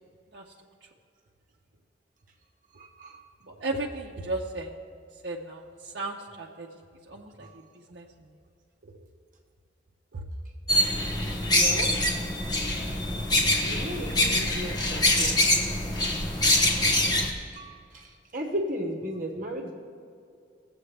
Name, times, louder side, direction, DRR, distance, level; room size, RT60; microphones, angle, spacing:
voice 1, 2.8-3.2 7.4-7.6 11.5-12.0 13.6-15.4 17.5-19.7, equal, 45° right, 1 dB, 1.1 m, -35 dB
voice 2, 3.4-4.7 5.2-6.7 7.1-7.5 7.9-8.3 10.1-10.2, right 2 dB, 65° right, -2 dB, 0.7 m, -35 dB
sound 1, 10.7-17.3, left 1 dB, 20° left, 1.0 m, -24 dB
18.0 x 8.0 x 3.3 m, 2.3 s
head